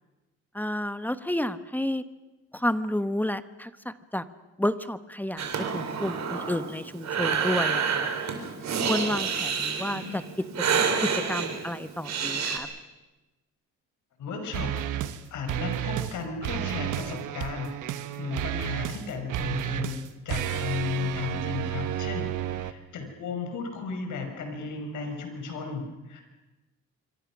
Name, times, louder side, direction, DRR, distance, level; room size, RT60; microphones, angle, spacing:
voice 1, 0.5-2.0 2.5-4.2 4.6-8.1 8.9-10.2 11.0-12.7, left 1 dB, 5° left, 12 dB, 1.1 m, -30 dB
Breathing, 5.4-12.6, right 6 dB, 60° right, 4.2 m, -29 dB
voice 2, 14.2-14.7 15.3-26.2, left 5 dB, 75° left, 4 dB, 5.9 m, -34 dB
sound 1, 14.5-15.2 15.5-16.2 16.4-22.7, right 12 dB, 85° right, 1.3 m, -31 dB
26.5 x 24.0 x 6.2 m, 1.1 s
cardioid pair, 90°, 30 cm